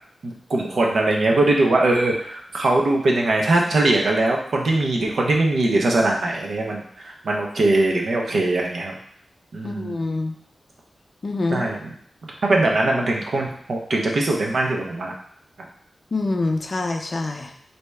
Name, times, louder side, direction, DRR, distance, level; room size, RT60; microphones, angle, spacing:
voice 1, 0.2-9.0 9.5-10.0 11.5-11.9 12.2-15.1, right 2 dB, 70° right, 0 dB, 0.7 m, -21 dB
voice 2, 9.6-10.3 11.2-11.6 16.1-17.5, left 2 dB, 40° left, 4 dB, 0.4 m, -25 dB
3.4 x 2.7 x 3.2 m, 0.64 s
wide cardioid pair, 165°, 0 cm